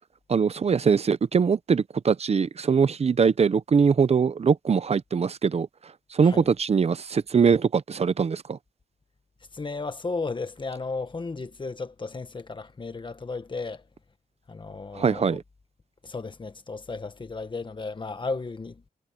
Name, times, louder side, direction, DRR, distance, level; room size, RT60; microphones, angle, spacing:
voice 1, 0.3-5.7 6.1-8.6 15.0-15.4, right 6 dB, 40° right, 0.6 m, -22 dB
voice 2, 9.5-13.9 14.5-15.4 16.0-18.8, left 3 dB, 30° left, 1.5 m, -34 dB
wide cardioid pair, 130°, 16 cm